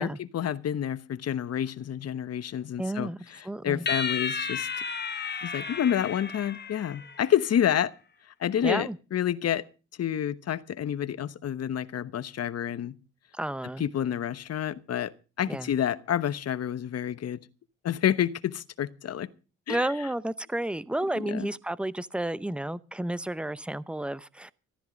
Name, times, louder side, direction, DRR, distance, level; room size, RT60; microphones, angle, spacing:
voice 1, 0.0-4.7 5.4-7.9 8.4-9.6 10.0-12.9 13.8-15.1 15.4-17.4 17.8-19.3 19.7-19.9 21.3-21.5, left 10 dB, 55° left, 1.1 m, -29 dB
voice 2, 2.8-3.2 3.4-3.9 8.6-9.0 13.3-13.8 15.5-15.7 19.7-24.5, right 1 dB, 5° right, 0.7 m, -31 dB
sound 1, 3.9-7.4, left 5 dB, 35° left, 1.7 m, -33 dB
14.5 x 13.5 x 5.1 m
cardioid pair, 90°, 30 cm